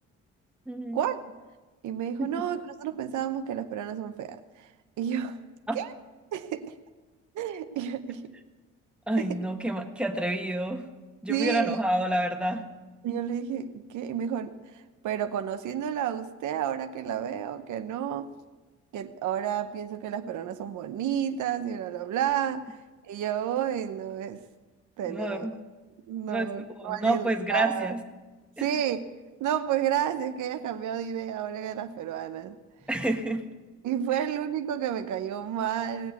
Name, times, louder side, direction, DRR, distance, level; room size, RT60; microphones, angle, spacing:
voice 1, 0.7-1.0 2.2-2.3 5.7-5.8 9.1-10.9 11.2-12.7 25.0-25.5 26.3-26.5 26.8-28.0 28.6-28.7 32.9-33.5 34.1-34.2, right 1 dB, 5° right, 3 dB, 1.4 m, -28 dB
voice 2, 1.8-4.7 5.0-5.4 5.7-5.9 6.3-6.8 7.3-8.2 9.2-9.3 11.3-11.8 13.0-18.3 18.9-24.4 25.0-25.5 26.1-27.9 28.6-29.1 29.4-32.6 33.8-36.1, right 9 dB, 80° right, 8 dB, 0.9 m, -31 dB
18.0 x 7.3 x 8.1 m, 1.2 s
cardioid pair, 90°, 30 cm